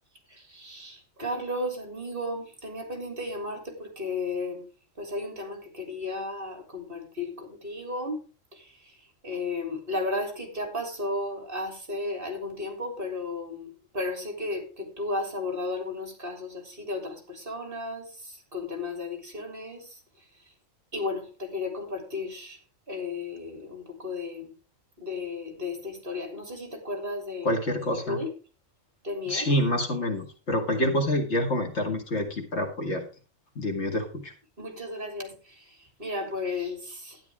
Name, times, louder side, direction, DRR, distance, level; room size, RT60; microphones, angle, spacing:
voice 1, 0.3-4.6 5.0-8.2 8.5-9.0 9.2-20.0 20.9-22.6 22.9-24.5 25.0-27.6 27.9-28.3 29.0-29.5 34.6-37.2, left 2 dB, 40° right, 3 dB, 3.4 m, -34 dB
voice 2, 27.4-28.2 29.3-33.0 33.6-34.3, left 1 dB, 55° left, 3 dB, 2.2 m, -27 dB
12.5 x 10.5 x 3.6 m, 0.34 s
omnidirectional pair, 1.4 m